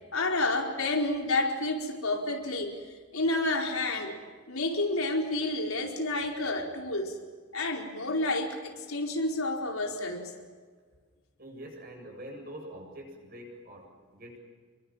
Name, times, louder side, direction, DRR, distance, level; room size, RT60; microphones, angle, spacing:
voice 1, 0.1-2.7 3.1-4.2 4.5-7.2 7.5-10.3, left 2 dB, 85° left, 1 dB, 4.8 m, -29 dB
voice 2, 11.4-14.4, right 1 dB, 45° right, 1 dB, 7.9 m, -45 dB
29.0 x 23.5 x 7.6 m, 1.5 s
head